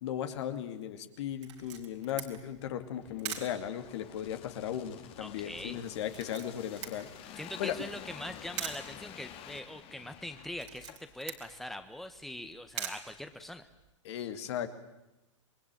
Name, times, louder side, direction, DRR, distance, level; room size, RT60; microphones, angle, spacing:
voice 1, 0.0-7.8 14.0-14.7, left 10 dB, 60° left, 8 dB, 2.5 m, -37 dB
Camera, 1.4-13.9, right 9 dB, 70° right, 4.3 m, -46 dB
sound 1, 3.0-11.3 11.7-11.8, left 10 dB, 35° left, 2.3 m, -50 dB
voice 2, 5.2-5.8 7.4-13.7, left 1 dB, ahead, 8 dB, 1.5 m, -42 dB
27.5 x 20.5 x 9.1 m, 0.96 s
hypercardioid pair, 110°, 16 cm